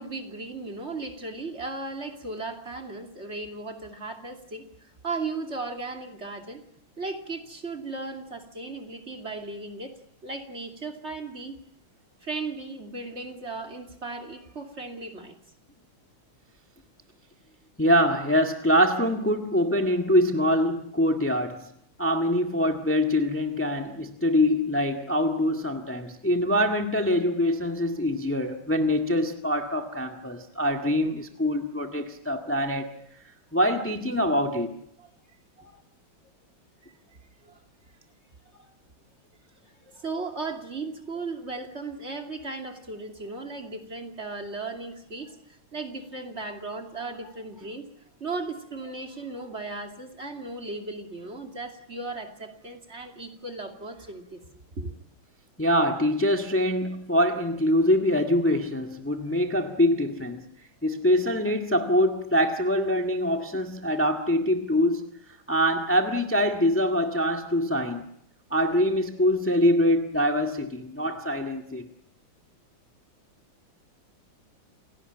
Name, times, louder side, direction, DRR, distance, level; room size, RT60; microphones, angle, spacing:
voice 1, 0.0-6.6 7.0-11.6 12.2-15.4 35.0-35.1 35.6-35.8 37.1-37.6 38.5-38.7 39.6-47.9 48.2-54.4 54.7-54.9, right 3 dB, 35° right, 4 dB, 2.8 m, -36 dB
voice 2, 17.8-21.7 22.0-32.9 33.5-34.7 55.6-60.4 60.8-65.0 65.5-68.0 68.5-71.9, equal, 5° left, 4 dB, 1.6 m, -24 dB
29.0 x 17.5 x 9.0 m, 0.74 s
omnidirectional pair, 2.2 m